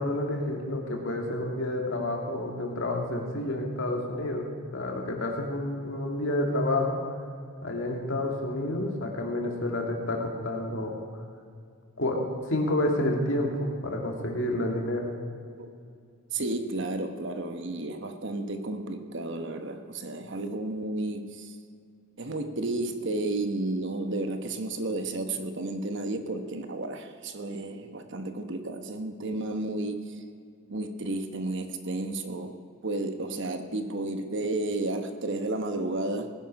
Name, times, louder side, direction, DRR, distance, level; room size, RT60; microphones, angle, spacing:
voice 1, 0.0-4.5 4.7-7.0 7.6-11.0 12.0-12.2 12.5-15.1, left 1 dB, 60° left, 1 dB, 2.2 m, -29 dB
voice 2, 16.3-21.5 22.2-30.1 30.7-36.3, right 2 dB, 55° right, 7 dB, 1.0 m, -32 dB
19.5 x 10.0 x 5.4 m, 2.3 s
head